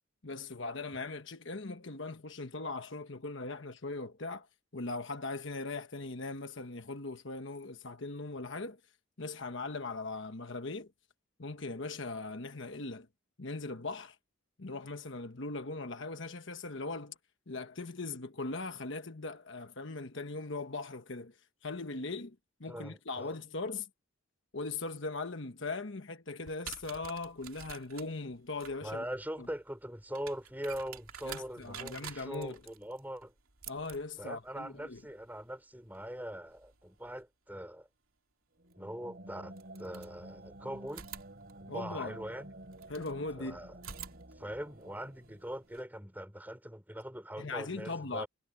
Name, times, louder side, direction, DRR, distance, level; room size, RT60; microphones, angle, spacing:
voice 1, 0.2-4.5 4.7-8.8 9.2-10.9 11.4-13.1 13.4-14.2 14.6-17.1 17.5-21.4 21.6-23.9 24.5-29.0 29.4-29.5 31.2-32.6 33.7-35.0 41.7-42.2 42.9-43.6 47.4-48.2, left 3 dB, 60° left, 1.2 m, -39 dB
voice 2, 22.7-23.3 28.8-33.3 34.2-37.9 38.8-41.1 41.6-42.5 43.4-43.7 44.4-48.3, equal, 10° right, 5.9 m, -42 dB
sound 1, 26.4-37.2 38.7-38.8 39.5-40.5 40.9-43.2 43.7-45.8, right 9 dB, 80° right, 2.6 m, -50 dB
sound 2, 38.5-46.0, right 1 dB, 50° right, 4.0 m, -51 dB
head